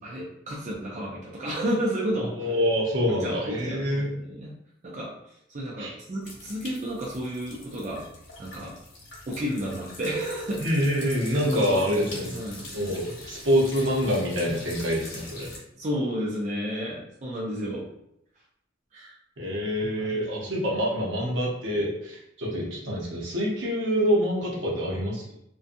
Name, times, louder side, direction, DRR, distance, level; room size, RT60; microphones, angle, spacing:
voice 1, 0.0-2.5 3.0-4.5 4.8-5.1 5.5-8.1 8.4-8.8 9.3-10.6 11.4-12.6 15.8-17.9 18.9-19.2 19.8-20.3, equal, 40° right, -5 dB, 0.4 m, -32 dB
voice 2, 2.4-4.1 5.8-5.9 10.6-12.4 12.7-15.5 19.4-25.2, equal, 70° right, -3 dB, 0.8 m, -26 dB
sound 1, 6.2-15.6, left 2 dB, 70° left, 0.9 m, -43 dB
2.5 x 2.2 x 2.5 m, 0.78 s
head